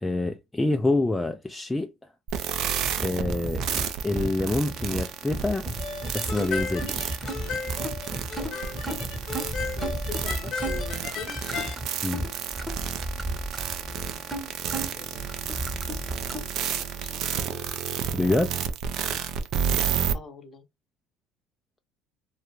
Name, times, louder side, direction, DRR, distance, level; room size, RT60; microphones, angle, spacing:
voice 1, 0.0-1.9 3.0-3.6 4.0-5.7 6.1-7.1 12.0-12.3 18.1-18.5, left 2 dB, 10° left, 0.3 m, -26 dB
sound 1, 2.3-20.1, right 8 dB, 60° right, 0.4 m, -31 dB
sound 2, 2.8-16.4, right 1 dB, 10° right, 0.9 m, -34 dB
sound 3, 5.8-11.8, left 5 dB, 60° left, 0.9 m, -35 dB
voice 2, 9.8-11.8 13.8-15.3 15.8-17.5 20.1-20.6, left 5 dB, 35° left, 0.7 m, -45 dB
2.4 x 2.2 x 3.0 m
supercardioid pair, 95°, 0 cm